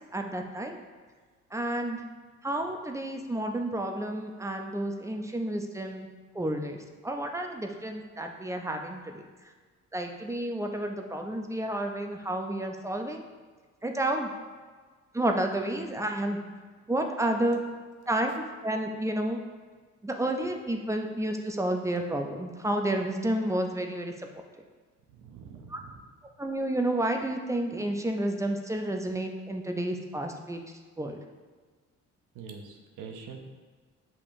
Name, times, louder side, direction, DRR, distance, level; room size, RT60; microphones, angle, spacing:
voice 1, 0.1-0.8 1.5-2.0 2.4-6.1 6.3-6.8 7.0-9.2 9.9-13.3 13.8-14.3 15.1-16.4 16.9-17.6 18.1-19.4 20.0-24.1 25.7-25.8 26.4-30.6 31.0-31.2, right 1 dB, 10° right, 3 dB, 0.4 m, -30 dB
voice 2, 25.1-26.0 32.3-33.4, right 5 dB, 85° right, 3 dB, 0.7 m, -44 dB
7.2 x 2.9 x 2.5 m, 1.5 s
cardioid pair, 90°, 30 cm